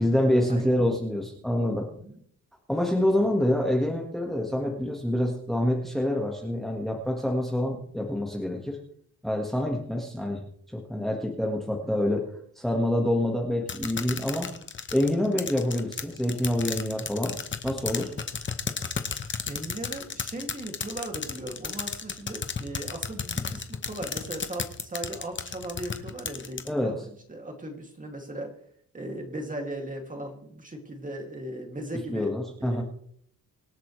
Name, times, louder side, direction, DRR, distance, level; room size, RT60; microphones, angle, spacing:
voice 1, 0.0-1.9 2.7-8.8 9.2-10.5 10.7-14.5 14.9-17.4 17.6-18.1 26.7-26.9 32.1-32.8, left 1 dB, ahead, 0 dB, 1.6 m, -26 dB
sound 1, 13.7-26.7, left 6 dB, 35° left, 1.0 m, -33 dB
voice 2, 19.5-28.5 28.9-32.3 32.6-32.8, right 1 dB, 20° right, 2 dB, 2.5 m, -37 dB
25.0 x 8.4 x 3.2 m, 0.65 s
wide cardioid pair, 150°, 35 cm